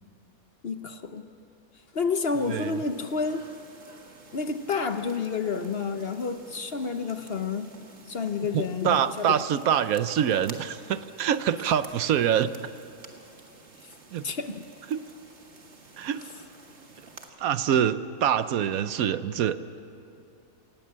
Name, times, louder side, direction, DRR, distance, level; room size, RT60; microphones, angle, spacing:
voice 1, 0.6-1.3 1.9-3.4 4.3-7.7 8.1-9.3 14.2-14.6, left 5 dB, 45° left, 8 dB, 1.0 m, -29 dB
sound 1, 2.2-17.3, right 3 dB, 50° right, 2.0 m, -51 dB
voice 2, 2.5-2.8 8.5-12.7 14.1-14.3 14.9-15.0 16.0-16.2 17.4-19.6, right 9 dB, 70° right, 13 dB, 1.1 m, -25 dB
27.5 x 18.0 x 7.4 m, 2.6 s
omnidirectional pair, 1.6 m